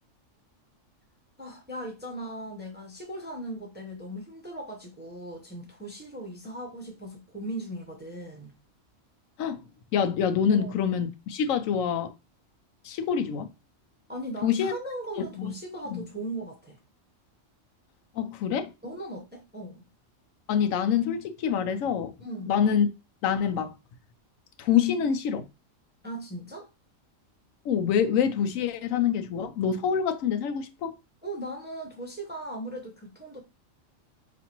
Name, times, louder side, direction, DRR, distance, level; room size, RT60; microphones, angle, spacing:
voice 1, 1.4-8.5 10.5-10.7 14.1-16.8 18.8-19.9 22.2-22.5 26.0-26.7 31.2-33.4, right 1 dB, 10° right, 0.6 m, -38 dB
voice 2, 9.9-12.1 12.8-13.5 14.4-14.7 15.2-15.5 15.9-16.0 18.2-18.7 20.5-22.1 22.5-22.9 23.2-23.7 24.6-25.4 27.6-31.0, left 8 dB, 80° left, 1.0 m, -26 dB
5.0 x 2.5 x 2.9 m
omnidirectional pair, 1.4 m